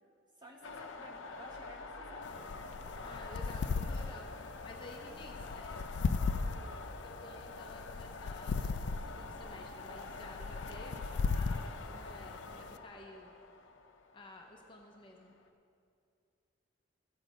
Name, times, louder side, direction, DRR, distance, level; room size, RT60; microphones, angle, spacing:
voice 1, 0.4-2.9 6.5-6.7, equal, 25° right, -1 dB, 1.4 m, -55 dB
sound 1, 0.6-15.5, left 3 dB, 80° left, 0.7 m, -47 dB
sound 2, 2.2-12.8, left 4 dB, 60° left, 0.3 m, -37 dB
voice 2, 3.0-4.3 4.6-5.8 6.4-13.3 14.1-15.3, left 2 dB, 25° left, 1 dB, 0.7 m, -53 dB
14.0 x 8.1 x 5.2 m, 2.5 s
head